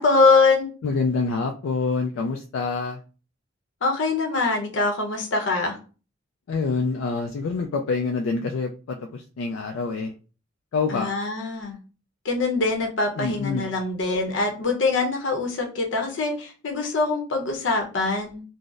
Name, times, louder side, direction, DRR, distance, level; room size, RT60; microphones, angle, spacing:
voice 1, 0.0-0.7 3.8-5.8 10.9-11.8 12.2-18.4, left 3 dB, 70° left, 3 dB, 0.7 m, -23 dB
voice 2, 0.8-3.0 6.5-10.1 10.7-11.1 13.2-13.6, left 4 dB, 90° left, 2 dB, 0.3 m, -26 dB
3.9 x 2.0 x 2.4 m, 0.36 s
head